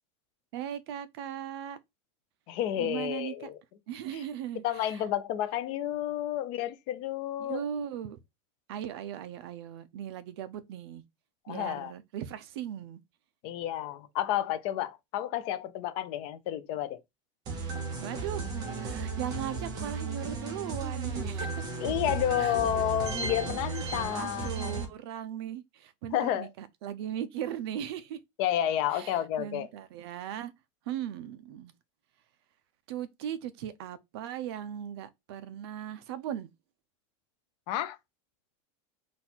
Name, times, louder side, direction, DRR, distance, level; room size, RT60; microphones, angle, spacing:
voice 1, 0.5-1.8 2.8-3.5 3.9-5.1 7.4-8.2 8.7-11.0 11.5-13.0 18.0-18.4 18.8-21.6 22.4-22.6 23.9-28.2 28.9-30.5 30.9-31.7 32.9-36.5, right 10 dB, 55° right, 0.6 m, -38 dB
voice 2, 2.5-3.6 4.6-7.6 11.5-11.9 13.4-17.0 21.8-24.8 26.1-26.5 28.4-29.7 37.7-38.0, left 11 dB, 35° left, 0.5 m, -31 dB
sound 1, 17.5-24.8, right 4 dB, 25° right, 0.9 m, -34 dB
4.2 x 2.4 x 4.2 m
supercardioid pair, 175°, 16 cm